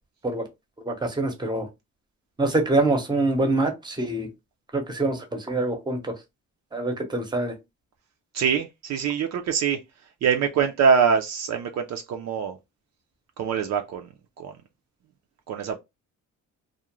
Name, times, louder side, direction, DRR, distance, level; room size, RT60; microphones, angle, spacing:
voice 1, 0.9-1.7 2.4-4.3 4.7-6.1 6.7-7.5, right 2 dB, 15° right, 0.7 m, -25 dB
voice 2, 8.3-9.8 10.2-12.6 13.4-14.1 14.4-14.6 15.5-15.8, right 6 dB, 60° right, 0.5 m, -24 dB
2.4 x 2.1 x 2.9 m
cardioid pair, 110°, 31 cm